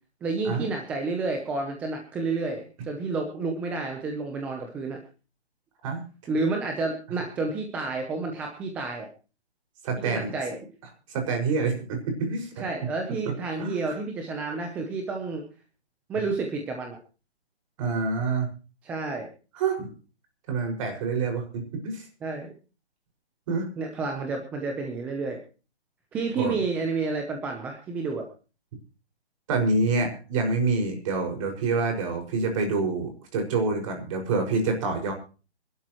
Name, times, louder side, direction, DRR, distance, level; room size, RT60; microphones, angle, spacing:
voice 1, 0.2-5.0 6.3-9.1 10.0-10.6 12.6-15.4 16.1-17.0 18.8-19.3 22.2-22.5 23.8-25.4 26.1-28.3, right 3 dB, 5° right, 3 dB, 0.7 m, -30 dB
voice 2, 5.8-6.3 9.8-10.3 11.1-12.7 13.6-13.9 17.8-18.5 19.5-19.9 20.5-22.1 23.5-23.7 26.3-26.6 29.5-35.1, right 4 dB, 30° right, 4 dB, 5.5 m, -27 dB
26.0 x 12.0 x 3.0 m, 0.35 s
hypercardioid pair, 160°, 33 cm